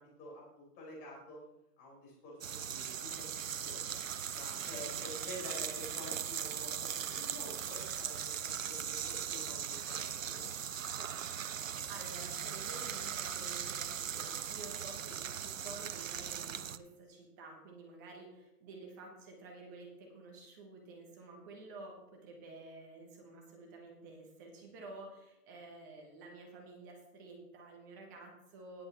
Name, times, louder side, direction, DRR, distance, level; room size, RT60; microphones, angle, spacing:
voice 1, 0.0-1.4 1.8-3.9 4.3-10.5, left 1 dB, 20° left, -4 dB, 4.7 m, -49 dB
sound 1, 2.4-16.8, right 8 dB, 55° right, 0.6 m, -39 dB
voice 2, 4.5-5.3 11.5-28.9, right 3 dB, 10° right, 1 dB, 1.0 m, -51 dB
18.5 x 8.0 x 3.4 m, 0.89 s
hypercardioid pair, 155°, 49 cm